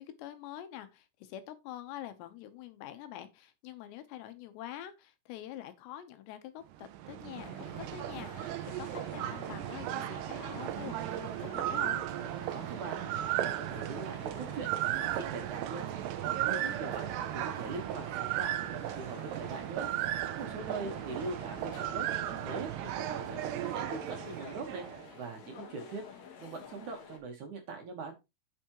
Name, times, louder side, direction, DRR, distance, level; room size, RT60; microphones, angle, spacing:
voice 1, 0.0-8.5 8.8-12.0 20.8-21.2, left 12 dB, 85° left, 3.2 m, -46 dB
sound 1, 6.7-25.1, right 13 dB, 85° right, 2.8 m, -36 dB
sound 2, 7.4-27.2, left 6 dB, 55° left, 2.1 m, -50 dB
voice 2, 12.5-13.0 13.4-15.9 16.2-19.9 20.4-24.9 25.2-26.0 26.4-28.1, right 4 dB, 60° right, 2.4 m, -41 dB
8.6 x 7.1 x 3.1 m
omnidirectional pair, 4.9 m